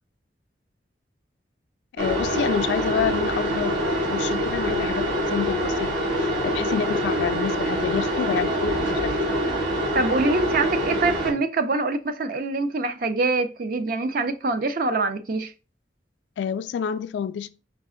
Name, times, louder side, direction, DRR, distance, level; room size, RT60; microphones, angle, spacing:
voice 1, 2.0-9.1 16.4-17.5, left 7 dB, 80° left, 0.3 m, -28 dB
sound 1, 2.0-11.3, equal, 75° right, 2.2 m, -25 dB
voice 2, 9.9-15.5, right 3 dB, 50° right, 0.5 m, -24 dB
5.2 x 2.4 x 3.7 m
head